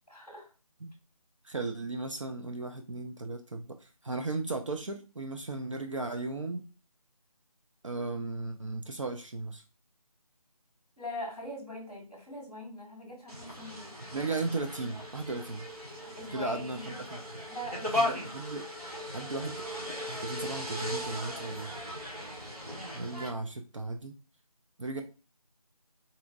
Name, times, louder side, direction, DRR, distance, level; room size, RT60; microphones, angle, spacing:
voice 1, 0.1-0.5 11.0-13.9 16.2-17.0 17.5-18.3 24.9-25.0, equal, 5° right, -12 dB, 0.6 m, -42 dB
voice 2, 1.4-6.7 7.8-9.6 14.1-15.7 16.3-17.4 17.8-18.7 19.1-19.6 20.1-21.7 22.9-24.1 24.8-25.0, right 3 dB, 55° right, 5 dB, 0.5 m, -36 dB
sound 1, 13.3-23.3, left 1 dB, 90° right, 1.9 m, -37 dB
4.2 x 2.5 x 2.6 m, 0.34 s
figure-of-eight pair, 160°, 19 cm